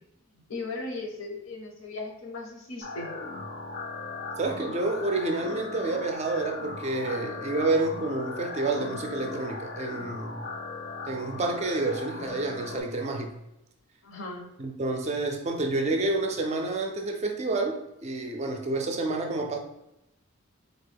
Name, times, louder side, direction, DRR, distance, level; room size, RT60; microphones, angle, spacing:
voice 1, 0.5-3.1 14.0-14.5, left 3 dB, 75° left, 1 dB, 0.7 m, -37 dB
sound 1, 2.8-12.8, left 3 dB, 45° left, 0.4 m, -38 dB
voice 2, 4.4-10.4 11.0-13.4 14.6-19.6, right 2 dB, 30° right, 3 dB, 0.4 m, -29 dB
3.8 x 2.1 x 3.4 m, 0.89 s
head